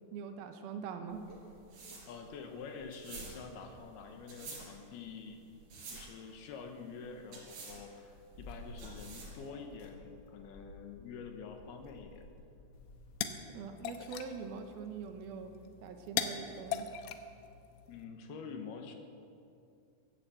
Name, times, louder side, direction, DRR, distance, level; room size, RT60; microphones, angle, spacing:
voice 1, 0.1-1.2 13.5-15.5 15.8-16.9, right 6 dB, 70° right, 6 dB, 2.4 m, -43 dB
sound 1, 1.1-9.5, right 4 dB, 50° right, 5.3 m, -50 dB
voice 2, 2.1-5.5 5.9-12.3 17.9-19.0, left 5 dB, 70° left, 4 dB, 2.8 m, -47 dB
sound 2, 8.4-13.2, left 2 dB, 35° left, 1.6 m, -53 dB
sound 3, 12.7-18.0, left 9 dB, 90° left, 3.2 m, -41 dB
14.5 x 11.5 x 7.8 m, 2.6 s
omnidirectional pair, 5.2 m